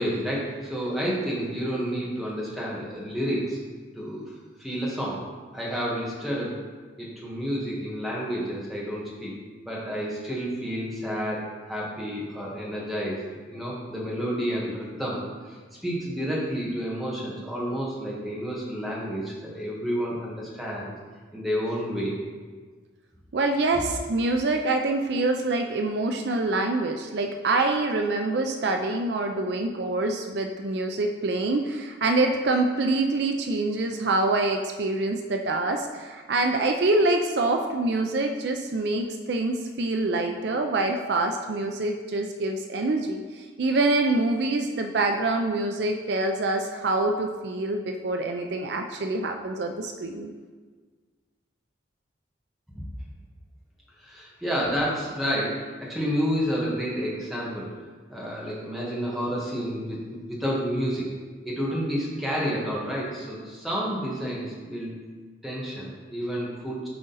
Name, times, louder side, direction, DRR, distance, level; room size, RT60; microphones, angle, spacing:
voice 1, 0.0-3.6 3.9-4.3 4.6-5.2 5.5-6.5 7.0-9.3 9.6-15.6 15.8-20.9 21.3-22.2 54.0-57.7 58.1-61.1 61.4-65.0 65.4-66.9, equal, ahead, -6 dB, 1.4 m, -30 dB
voice 2, 23.3-50.3, right 2 dB, 60° right, 4 dB, 0.4 m, -25 dB
10.0 x 3.8 x 4.0 m, 1.5 s
head